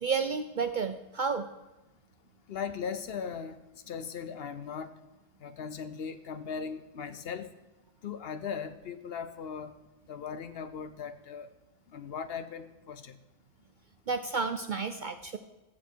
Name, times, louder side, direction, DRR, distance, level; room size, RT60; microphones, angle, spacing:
voice 1, 0.0-1.4 14.1-15.4, right 5 dB, 55° right, 9 dB, 0.5 m, -31 dB
voice 2, 2.5-5.0 5.4-7.5 8.0-9.8 10.1-11.5 11.9-13.2, left 6 dB, 60° left, 12 dB, 0.8 m, -38 dB
14.5 x 7.1 x 4.5 m, 1.1 s
omnidirectional pair, 1.3 m